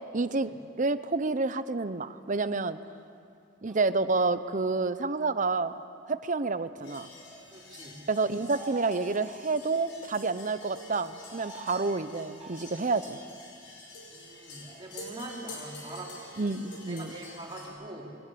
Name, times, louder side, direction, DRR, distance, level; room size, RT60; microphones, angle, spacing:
voice 1, 0.1-0.5 0.8-2.8 3.6-5.7 6.1-7.1 8.1-13.2 16.4-17.1, right 3 dB, 40° right, 13 dB, 0.7 m, -29 dB
sound 1, 3.7-4.2 7.1-7.5 8.4-9.5 11.1-12.0 12.4-12.9 14.6-14.8, right 3 dB, ahead, 5.7 m, -47 dB
sound 2, 6.8-17.7, left 2 dB, 90° left, 5.3 m, -47 dB
voice 2, 7.5-8.1 14.1-16.2 16.9-18.2, right 1 dB, 25° right, -3 dB, 3.7 m, -43 dB
22.5 x 19.0 x 8.7 m, 2.6 s
head